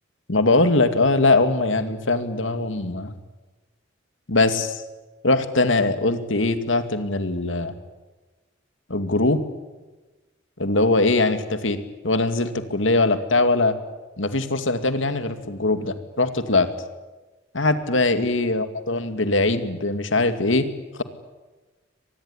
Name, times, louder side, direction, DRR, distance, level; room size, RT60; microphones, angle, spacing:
voice 1, 0.3-3.1 4.3-4.8 5.2-7.7 8.9-9.4 10.6-11.8 12.0-13.8 14.2-16.7 17.5-20.7, left 2 dB, 90° left, 9 dB, 2.3 m, -21 dB
24.5 x 20.0 x 10.0 m, 1.2 s
head